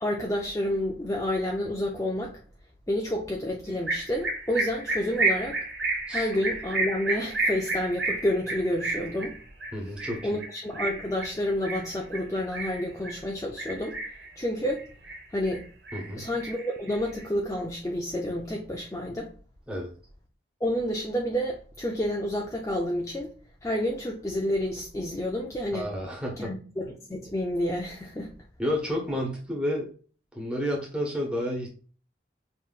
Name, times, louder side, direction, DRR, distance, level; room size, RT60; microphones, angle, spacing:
voice 1, 0.0-2.4 2.9-5.6 6.1-9.4 10.2-14.0 14.4-14.9 15.3-15.7 16.1-19.3 20.6-23.3 23.6-25.9 26.4-28.4, left 1 dB, 15° left, 0.5 m, -29 dB
sound 1, 3.9-13.2 13.6-14.3 14.7-15.6 15.9-17.2, right 2 dB, 75° right, 1.8 m, -31 dB
voice 2, 9.7-10.4 15.9-16.3 19.7-19.9 25.7-26.5 28.6-29.9 30.3-31.7, equal, 5° right, 1.2 m, -31 dB
5.6 x 3.0 x 2.4 m
head